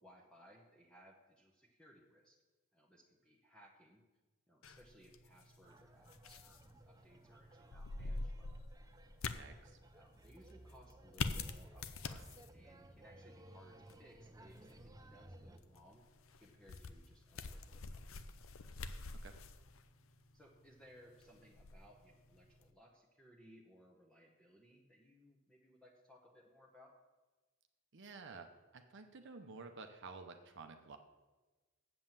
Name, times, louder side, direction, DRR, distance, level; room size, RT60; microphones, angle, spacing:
voice 1, 0.0-2.4 2.7-4.0 4.5-6.6 6.9-8.5 9.9-12.3 12.5-16.1 16.4-18.1 20.3-26.9, equal, 5° left, -2 dB, 0.9 m, -63 dB
sound 1, 4.6-22.7, left 3 dB, 65° left, 0.6 m, -47 dB
sound 2, 5.6-15.6, right 1 dB, 15° right, 0.5 m, -59 dB
voice 2, 9.3-9.8 19.2-19.4 27.9-31.0, right 4 dB, 55° right, 6 dB, 0.7 m, -52 dB
7.8 x 7.6 x 7.4 m, 1.2 s
head